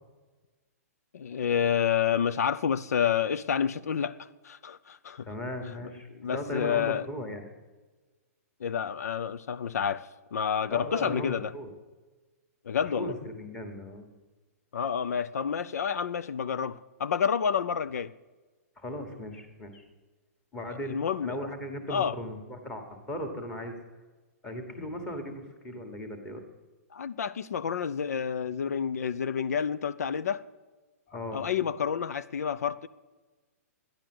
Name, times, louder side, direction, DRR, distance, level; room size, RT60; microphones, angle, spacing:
voice 1, 1.1-4.2 4.4-5.2 6.2-7.0 8.6-10.1 10.3-11.5 12.7-13.1 14.7-18.1 20.7-21.3 21.9-22.2 26.9-30.4 31.3-32.9, left 7 dB, 80° left, 0.6 m, -29 dB
voice 2, 5.2-7.5 10.7-11.7 13.0-14.1 18.8-19.8 20.5-23.7 24.4-26.4 31.1-31.4, left 1 dB, 10° left, 1.3 m, -37 dB
13.5 x 10.5 x 7.7 m
hypercardioid pair, 175°, 8 cm